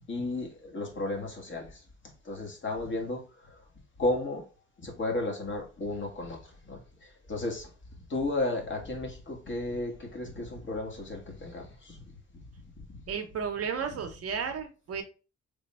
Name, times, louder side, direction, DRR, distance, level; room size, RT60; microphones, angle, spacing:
voice 1, 0.1-1.7 2.2-3.2 4.0-4.4 4.8-6.4 6.7-6.8 7.3-7.7 8.1-12.0 12.8-12.9, left 2 dB, 40° left, 1.3 m, -33 dB
voice 2, 13.1-15.0, right 6 dB, 50° right, 0.7 m, -33 dB
3.4 x 2.2 x 4.1 m
cardioid pair, 90°, 30 cm